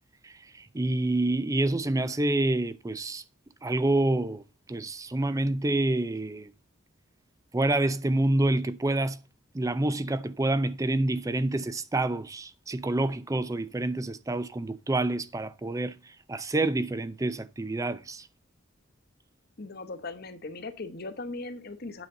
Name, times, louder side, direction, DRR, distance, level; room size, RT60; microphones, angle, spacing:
voice 1, 0.7-3.2 3.6-4.4 4.7-6.5 7.5-9.2 9.5-15.9 16.3-18.3, right 2 dB, 15° right, 0.5 m, -27 dB
voice 2, 19.6-22.1, left 3 dB, 50° left, 1.1 m, -38 dB
9.2 x 6.8 x 3.8 m
head